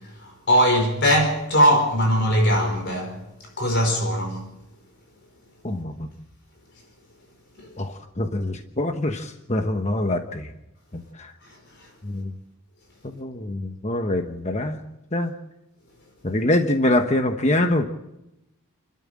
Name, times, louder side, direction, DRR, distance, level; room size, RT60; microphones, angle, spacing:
voice 1, 0.2-3.2 3.6-4.4 7.6-7.7, equal, 50° left, 4.8 m, -20 dB
voice 2, 5.6-6.1 7.8-10.5 10.9-11.3 12.0-12.3 13.0-14.8 15.1-15.3 16.2-17.8, left 1 dB, 30° left, 1.1 m, -24 dB
30.0 x 12.5 x 7.6 m
head